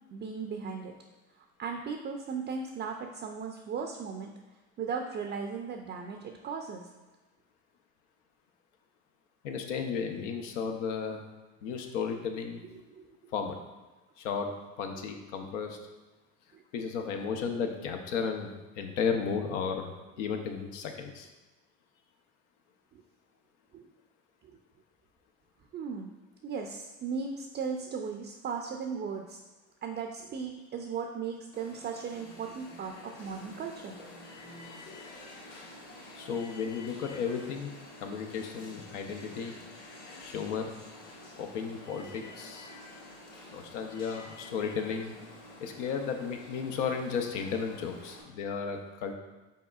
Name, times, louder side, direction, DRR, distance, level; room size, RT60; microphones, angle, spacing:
voice 1, 0.1-0.9 1.4-4.3 4.8-6.9 12.7-13.3 15.0-15.1 16.5-16.6 22.9-23.0 23.7-23.9 24.4-24.5 25.7-26.1 26.4-29.4 29.8-34.0, right 5 dB, 30° right, 3 dB, 0.4 m, -37 dB
voice 2, 9.4-11.2 11.6-12.6 13.3-13.6 14.2-14.5 14.8-15.8 16.7-19.9 20.2-21.3 36.2-39.5 40.2-40.7 41.4-42.7 43.5-45.2 45.6-49.1, left 6 dB, 90° left, 5 dB, 0.7 m, -34 dB
Alarm, 31.5-48.2, left 2 dB, 65° left, 1.4 m, -49 dB
5.5 x 4.0 x 2.3 m, 1.2 s
supercardioid pair, 100°, 35 cm